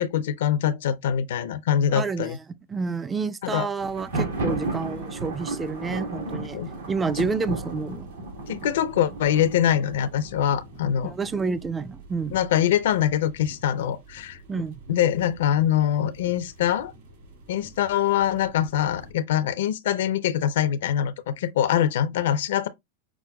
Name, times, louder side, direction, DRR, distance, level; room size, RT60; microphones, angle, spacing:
voice 1, 0.0-2.4 3.4-3.7 6.5-6.7 8.5-11.1 12.3-14.4 14.9-16.9 17.5-22.7, left 10 dB, 75° left, 0.5 m, -24 dB
voice 2, 1.9-2.4 2.7-6.6 6.9-8.1 11.0-12.4 14.5-14.8, right 4 dB, 15° right, 0.3 m, -29 dB
sound 1, 3.8-19.1, right 2 dB, 70° right, 2.8 m, -48 dB
Thunder, 3.9-11.6, right 2 dB, 85° right, 1.6 m, -34 dB
5.9 x 2.2 x 2.3 m
hypercardioid pair, 125°, 0 cm